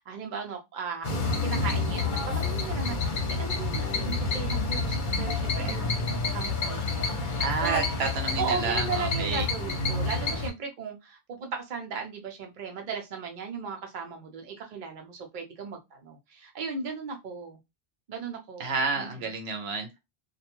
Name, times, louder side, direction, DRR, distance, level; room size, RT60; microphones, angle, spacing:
voice 1, 0.0-7.8 8.4-17.6 18.1-19.3, right 5 dB, 55° right, 0.8 m, -37 dB
sound 1, 1.0-10.5, left 3 dB, 55° left, 0.8 m, -29 dB
voice 2, 7.4-9.5 18.6-20.0, right 4 dB, 85° right, 0.9 m, -30 dB
2.2 x 2.2 x 2.9 m
omnidirectional pair, 1.1 m